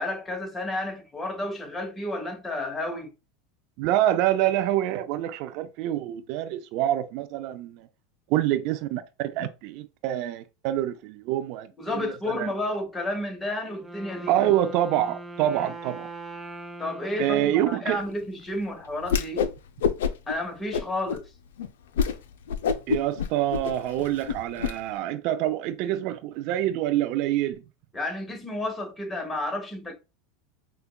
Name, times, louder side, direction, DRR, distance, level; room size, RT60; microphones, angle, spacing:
voice 1, 0.0-3.1 11.8-14.4 16.8-19.5 20.3-21.2 27.9-29.9, left 1 dB, 15° left, 1.1 m, -31 dB
voice 2, 3.8-7.9 8.3-12.5 14.3-16.1 17.2-18.0 22.9-27.6, right 13 dB, 60° right, 0.3 m, -26 dB
Wind instrument woodwind instrument, 13.7-18.5, right 2 dB, 5° right, 0.6 m, -41 dB
Whoosh swoosh swish, 19.0-19.5 19.8-20.3 20.7-21.2 21.6-21.7 22.0-22.2 22.5-24.7, left 6 dB, 75° left, 0.4 m, -26 dB
5.0 x 2.2 x 2.2 m
hypercardioid pair, 95°, 0 cm